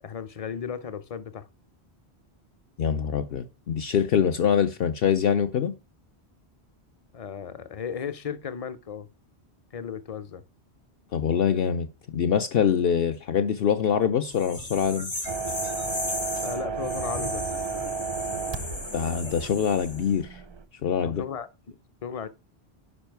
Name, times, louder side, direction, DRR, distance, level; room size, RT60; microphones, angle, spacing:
voice 1, 0.0-1.5 7.1-9.1 9.7-10.4 16.4-17.4 21.0-21.5 22.0-22.3, left 7 dB, 40° left, 0.6 m, -35 dB
voice 2, 2.8-5.7 11.1-11.9 12.1-15.1 18.9-20.4 20.8-21.2, left 7 dB, 65° left, 0.8 m, -24 dB
sound 1, 14.3-20.1, left 1 dB, 85° left, 3.2 m, -35 dB
sound 2, 15.3-20.6, right 5 dB, 40° right, 0.4 m, -33 dB
9.8 x 5.4 x 4.5 m
omnidirectional pair, 1.1 m